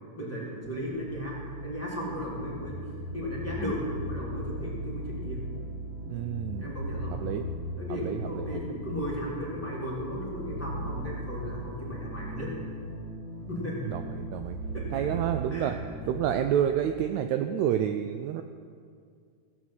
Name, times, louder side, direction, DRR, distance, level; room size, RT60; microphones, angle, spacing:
voice 1, 0.1-2.8 3.1-5.4 6.6-7.2 7.8-12.5 13.5-13.9 14.7-15.1 15.5-15.7 16.0-16.1, equal, 5° left, -6 dB, 2.8 m, -35 dB
sound 1, 0.6-16.4, right 1 dB, 65° right, 3.2 m, -38 dB
voice 2, 6.1-6.7 7.1-7.5 8.0-8.7 13.9-14.6 14.9-15.7 16.1-18.4, right 10 dB, 85° right, 7 dB, 1.6 m, -29 dB
16.5 x 6.2 x 7.9 m, 2.2 s
omnidirectional pair, 3.8 m